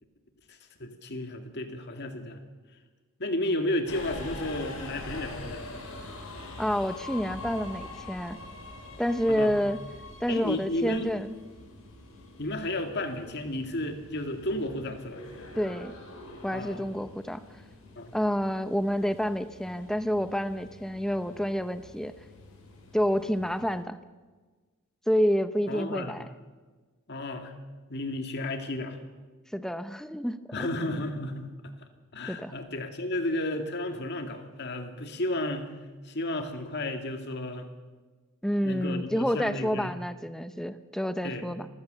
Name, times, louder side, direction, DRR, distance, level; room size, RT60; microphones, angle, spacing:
voice 1, 0.5-2.4 3.2-5.6 9.3-9.6 10.3-11.1 12.4-15.2 16.5-16.9 18.0-18.1 25.7-26.1 27.1-27.5 27.9-29.0 30.5-31.5 32.1-35.7 36.0-37.7 38.6-39.9 41.2-41.5, left 1 dB, 50° left, 5 dB, 2.2 m, -33 dB
Subway metro underground, 3.9-23.8, left 2 dB, 70° left, 4.9 m, -45 dB
voice 2, 6.6-8.4 9.0-9.8 10.2-11.3 15.6-16.0 16.4-17.4 18.1-22.1 22.9-24.0 25.1-26.3 29.5-30.7 32.3-32.5 38.4-41.7, equal, ahead, 11 dB, 0.8 m, -28 dB
27.5 x 15.5 x 6.9 m, 1.4 s
head